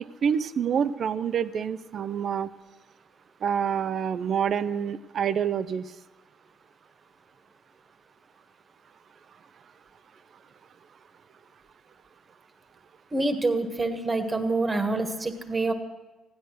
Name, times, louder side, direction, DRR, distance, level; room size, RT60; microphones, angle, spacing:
voice 1, 0.2-2.5 3.4-5.8, right 7 dB, 55° right, 15 dB, 0.6 m, -27 dB
voice 2, 13.1-15.7, right 2 dB, 25° right, 7 dB, 1.6 m, -26 dB
15.5 x 10.5 x 6.4 m, 1.1 s
supercardioid pair, 80°, 0 cm